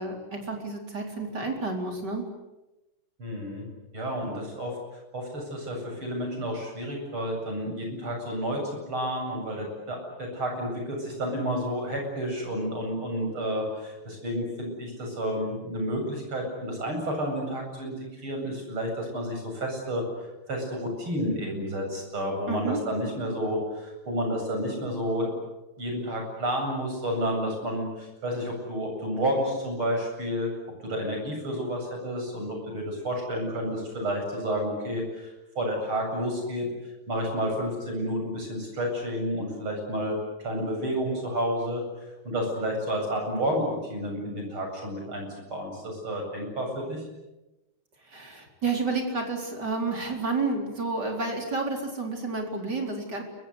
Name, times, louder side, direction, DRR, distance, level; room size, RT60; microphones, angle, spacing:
voice 1, 0.0-2.3 22.5-22.8 48.1-53.2, right 3 dB, 50° right, 2 dB, 4.9 m, -30 dB
voice 2, 3.2-3.7 3.9-8.6 8.9-25.3 25.8-30.5 30.8-36.7 37.1-41.8 42.2-47.0, equal, 85° right, 2 dB, 9.0 m, -30 dB
29.5 x 23.5 x 8.2 m, 1.0 s
omnidirectional pair, 2.3 m